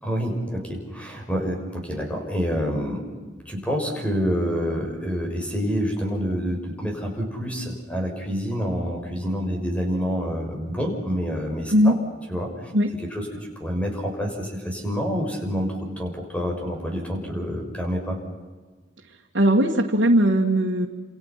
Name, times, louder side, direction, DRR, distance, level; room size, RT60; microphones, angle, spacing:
voice 1, 0.0-3.0 3.5-12.0 12.3-12.7 13.1-13.3 13.6-18.2, equal, 5° left, 1 dB, 6.1 m, -27 dB
voice 2, 19.3-20.9, equal, 75° right, -1 dB, 2.2 m, -18 dB
30.0 x 28.0 x 5.9 m, 1.4 s
head